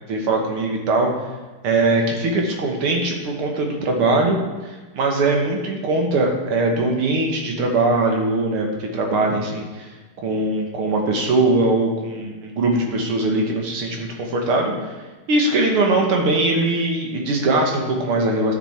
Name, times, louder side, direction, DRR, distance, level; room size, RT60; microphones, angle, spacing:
voice 1, 0.1-1.1 1.6-4.4 4.6-9.9 10.2-14.9 15.3-18.5, right 2 dB, 80° right, 1 dB, 2.2 m, -21 dB
11.0 x 6.5 x 4.4 m, 1.2 s
omnidirectional pair, 2.4 m